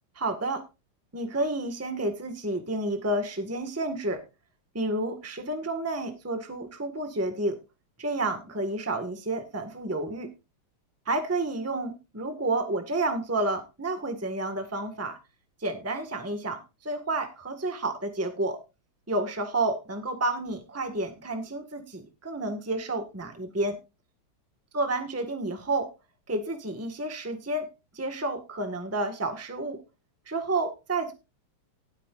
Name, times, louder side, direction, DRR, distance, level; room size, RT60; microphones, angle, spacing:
voice 1, 0.1-0.6 1.1-4.2 4.7-7.6 8.0-10.3 11.1-15.2 15.6-18.6 19.1-23.8 24.7-25.9 26.3-29.8 30.3-31.1, right 2 dB, 10° right, 6 dB, 1.4 m, -30 dB
19.0 x 8.6 x 2.5 m, 0.27 s
omnidirectional pair, 2.4 m